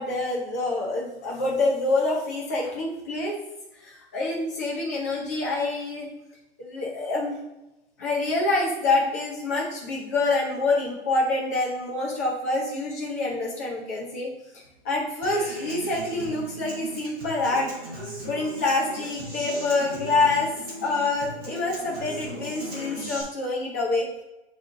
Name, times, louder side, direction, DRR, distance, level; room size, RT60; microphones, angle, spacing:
voice 1, 0.0-3.3 3.8-6.1 6.6-7.4 8.0-14.3 14.8-17.7 18.3-20.5 20.8-24.1, left 2 dB, 15° left, -3 dB, 0.7 m, -26 dB
Human voice / Acoustic guitar, 15.2-23.2, right 1 dB, 15° right, 1.0 m, -38 dB
8.8 x 3.2 x 3.7 m, 0.95 s
hypercardioid pair, 175°, 33 cm